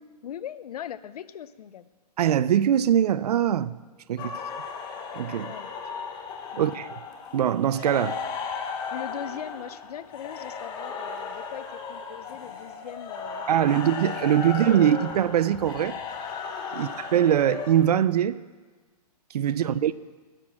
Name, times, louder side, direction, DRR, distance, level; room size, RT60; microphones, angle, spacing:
voice 1, 0.2-1.9 4.2-4.4 5.5-5.7 6.5-6.7 8.9-13.9 14.2-14.6 16.7-16.9 19.5-19.9, left 9 dB, 65° left, 0.6 m, -40 dB
voice 2, 2.2-3.8 4.1-4.3 5.1-5.5 6.6-7.0 7.3-8.2 13.5-16.0 16.7-18.4 19.3-19.9, right 10 dB, 70° right, 0.5 m, -22 dB
sound 1, 4.2-17.7, left 5 dB, 20° left, 0.9 m, -36 dB
10.5 x 7.5 x 6.2 m
hypercardioid pair, 145°, 21 cm